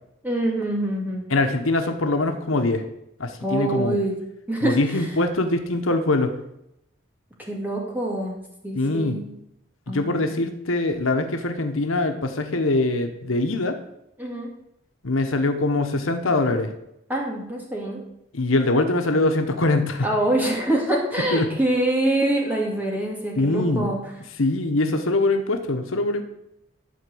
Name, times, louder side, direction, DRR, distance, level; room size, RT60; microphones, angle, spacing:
voice 1, 0.2-1.2 3.4-4.2 4.5-4.8 7.5-9.4 9.9-10.3 14.2-14.5 17.1-18.0 20.0-24.0, right 1 dB, 10° right, -2 dB, 2.2 m, -25 dB
voice 2, 1.3-2.8 3.2-4.0 4.6-6.3 8.7-9.2 9.9-13.8 15.0-16.7 18.3-20.1 21.3-21.5 23.4-24.0 24.4-26.2, left 2 dB, 90° left, 6 dB, 1.2 m, -23 dB
11.5 x 4.6 x 7.8 m, 0.82 s
head